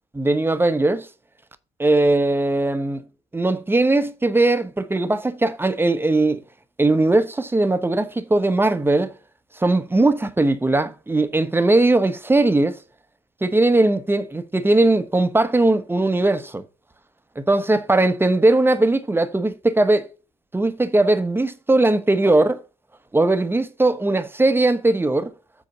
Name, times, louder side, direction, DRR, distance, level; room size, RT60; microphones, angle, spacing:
voice 1, 0.2-1.1 1.8-3.0 3.3-6.4 6.8-9.1 9.6-12.8 13.4-16.6 17.4-20.1 20.5-22.6 23.1-25.3, right 2 dB, 15° right, 1.0 m, -19 dB
7.7 x 4.1 x 5.8 m
hypercardioid pair, 55°, 15 cm